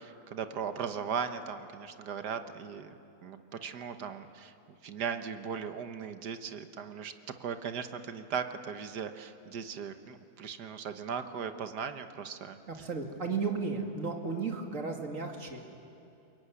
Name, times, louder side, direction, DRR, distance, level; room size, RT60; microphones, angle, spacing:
voice 1, 0.0-2.9 3.2-4.5 4.8-12.6, right 7 dB, 70° right, 9 dB, 1.7 m, -38 dB
voice 2, 12.7-15.7, right 4 dB, 45° right, 3 dB, 2.6 m, -34 dB
23.5 x 22.0 x 9.8 m, 2.8 s
omnidirectional pair, 1.9 m